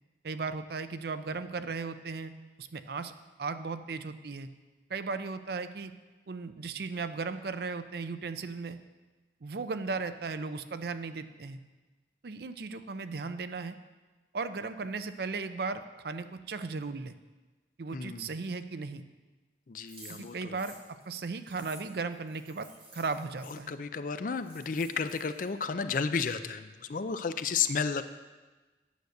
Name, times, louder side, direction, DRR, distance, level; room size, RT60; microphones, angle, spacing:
voice 1, 0.2-2.3 2.6-3.1 3.4-4.5 4.9-5.9 6.3-8.8 9.4-11.6 12.2-13.8 14.3-17.1 17.8-19.0 20.1-20.8 21.1-22.7 22.9-23.7, right 4 dB, 55° right, 11 dB, 0.5 m, -36 dB
voice 2, 17.9-18.3 19.7-20.6 23.4-28.0, left 5 dB, 45° left, 11 dB, 0.4 m, -32 dB
sound 1, 19.9-23.6 24.1-24.2 24.4-25.5, right 2 dB, 35° right, 2.7 m, -52 dB
9.3 x 6.4 x 6.5 m, 1.2 s
head